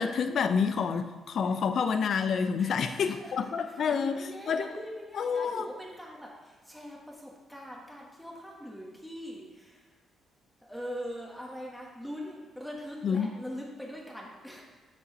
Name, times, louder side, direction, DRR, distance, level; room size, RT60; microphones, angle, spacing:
voice 1, 0.0-4.2 4.5-4.7 5.2-5.7 13.0-13.3, left 6 dB, 60° left, 9 dB, 0.6 m, -28 dB
voice 2, 2.6-3.3 3.7-9.9 10.6-14.6, equal, 5° left, -2 dB, 1.5 m, -42 dB
6.9 x 5.4 x 5.2 m, 1.3 s
cardioid pair, 90°, 0 cm